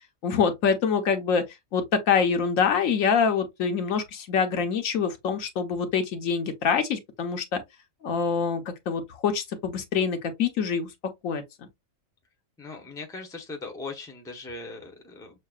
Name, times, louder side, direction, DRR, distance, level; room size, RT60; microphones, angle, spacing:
voice 1, 0.2-1.4 1.7-7.6 8.0-10.9 11.2-11.4, left 6 dB, 75° left, 1.2 m, -25 dB
voice 2, 12.6-15.4, left 3 dB, 5° left, 0.6 m, -39 dB
6.4 x 2.2 x 2.3 m
omnidirectional pair, 1.4 m